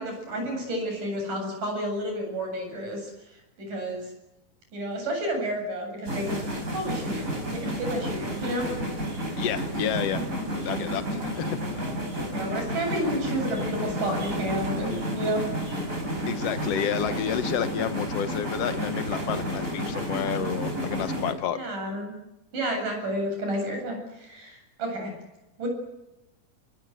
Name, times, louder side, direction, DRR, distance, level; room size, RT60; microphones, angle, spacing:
voice 1, 0.0-4.1 4.7-6.4 6.7-8.9 12.3-15.5 16.8-17.0 21.5-22.1 22.5-25.1 25.6-25.7, right 1 dB, 55° right, 3 dB, 9.5 m, -31 dB
sound 1, 6.0-21.3, equal, 20° right, 4.8 m, -31 dB
voice 2, 9.4-10.2 10.6-11.6 16.3-21.6, left 9 dB, 75° left, 10 dB, 1.4 m, -30 dB
27.0 x 22.5 x 8.1 m, 0.96 s
omnidirectional pair, 4.6 m